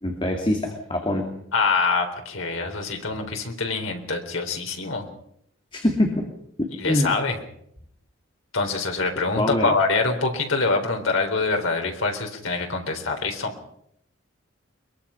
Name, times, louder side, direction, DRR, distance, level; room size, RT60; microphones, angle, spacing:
voice 1, 0.0-1.3 5.7-6.3 6.6-7.2 9.4-9.7, left 1 dB, 25° left, 2 dB, 2.4 m, -24 dB
voice 2, 1.5-5.1 6.8-7.4 8.5-13.5, left 3 dB, 85° left, 3 dB, 3.7 m, -25 dB
23.0 x 22.0 x 5.7 m, 0.73 s
head